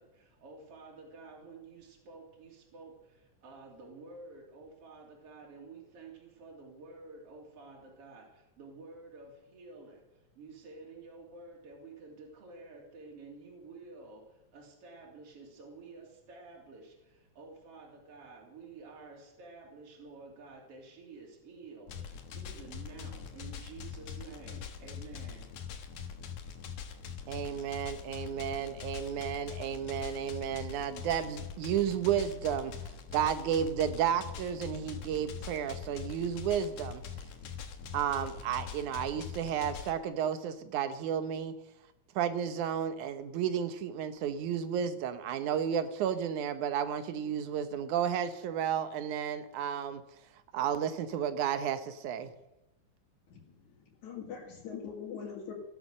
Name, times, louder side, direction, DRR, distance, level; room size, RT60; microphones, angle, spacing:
voice 1, 0.0-25.5, right 3 dB, 50° right, -2 dB, 4.1 m, -51 dB
sound 1, 21.9-39.9, left 7 dB, 90° left, 2.9 m, -43 dB
voice 2, 27.3-32.7 33.1-37.0 37.9-41.5 42.2-50.0 50.5-52.3, right 8 dB, 80° right, 10 dB, 2.5 m, -32 dB
voice 3, 53.3-55.5, left 7 dB, 70° left, -1 dB, 3.5 m, -43 dB
16.5 x 11.5 x 6.5 m, 0.94 s
omnidirectional pair, 3.5 m